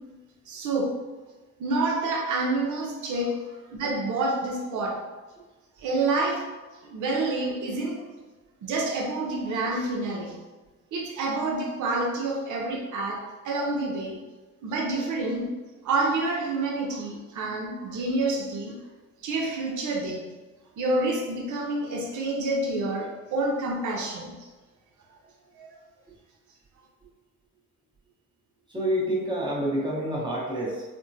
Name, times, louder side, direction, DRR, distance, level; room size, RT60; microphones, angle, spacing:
voice 1, 0.5-1.0 1.6-5.0 5.8-6.5 6.8-8.0 8.6-10.4 10.9-14.2 14.6-15.5 15.8-18.8 19.2-20.3 20.8-24.5 25.5-25.8, right 2 dB, 75° right, 0 dB, 0.7 m, -28 dB
voice 2, 28.7-30.8, equal, 15° right, -5 dB, 1.0 m, -28 dB
3.5 x 2.2 x 2.7 m, 1.2 s
cardioid pair, 90°, 30 cm